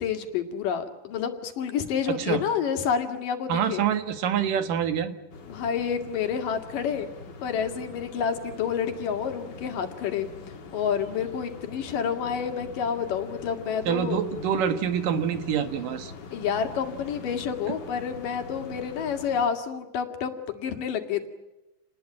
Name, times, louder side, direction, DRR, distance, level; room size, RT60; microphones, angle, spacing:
voice 1, 0.0-3.8 5.5-7.1 7.4-10.3 10.7-14.2 16.3-21.3, left 7 dB, 75° left, 6 dB, 3.7 m, -29 dB
voice 2, 3.5-5.2 13.9-16.1, right 8 dB, 75° right, 9 dB, 3.2 m, -26 dB
sound 1, 5.3-19.5, left 4 dB, 35° left, 2.2 m, -43 dB
28.5 x 20.0 x 8.8 m, 0.99 s
omnidirectional pair, 3.8 m